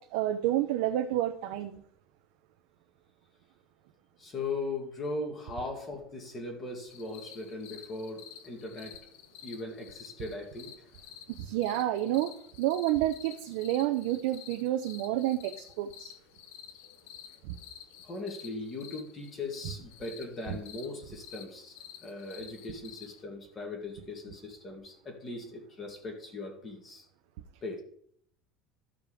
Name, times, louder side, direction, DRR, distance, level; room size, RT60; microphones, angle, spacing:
voice 1, 0.0-1.8 11.4-12.3 12.6-16.1 17.4-17.5, right 13 dB, 70° right, 5 dB, 0.7 m, -29 dB
voice 2, 4.2-9.0 9.4-10.9 18.0-27.1 27.6-27.8, left 2 dB, 20° left, 2 dB, 2.1 m, -39 dB
sound 1, 6.9-23.2, left 9 dB, 85° left, 1.1 m, -50 dB
14.0 x 5.1 x 4.9 m, 0.66 s
cardioid pair, 175°, 0 cm